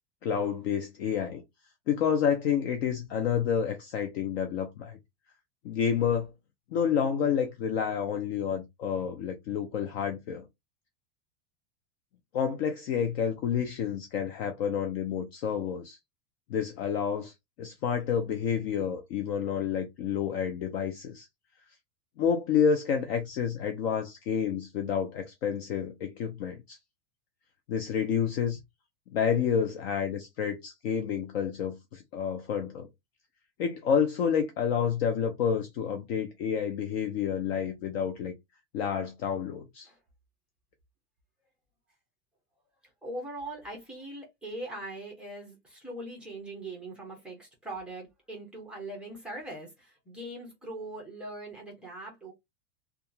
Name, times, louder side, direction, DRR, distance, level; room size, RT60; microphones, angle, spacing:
voice 1, 0.2-1.4 1.9-5.0 5.6-6.3 6.7-10.5 12.3-16.0 16.5-17.3 17.6-21.3 22.2-26.8 27.7-28.6 29.1-32.9 33.6-38.3 38.7-39.9, left 7 dB, 40° left, 0.4 m, -29 dB
voice 2, 43.0-52.3, right 1 dB, ahead, 0.8 m, -41 dB
2.7 x 2.4 x 2.6 m
supercardioid pair, 150°, 50 cm